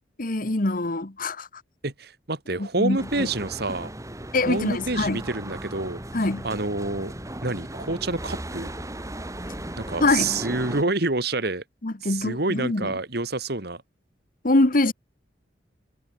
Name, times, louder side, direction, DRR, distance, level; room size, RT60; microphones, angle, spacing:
voice 1, 0.2-1.5 2.6-3.3 4.3-5.2 6.1-6.4 10.0-10.3 11.8-12.9 14.4-14.9, left 2 dB, 50° left, 1.5 m, -24 dB
voice 2, 1.8-3.9 4.5-6.0 6.4-7.1 7.4-8.7 9.8-11.6 12.0-13.8, right 2 dB, 60° right, 2.5 m, -28 dB
sound 1, 3.0-10.8, right 1 dB, 20° right, 2.8 m, -36 dB
head